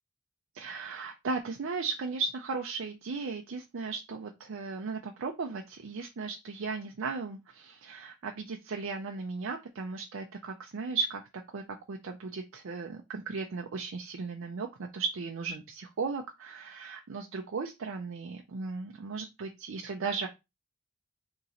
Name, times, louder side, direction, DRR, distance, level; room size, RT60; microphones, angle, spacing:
voice 1, 0.5-11.2 11.5-20.3, right 4 dB, 60° right, 3 dB, 0.5 m, -36 dB
2.9 x 2.8 x 3.8 m, 0.23 s
head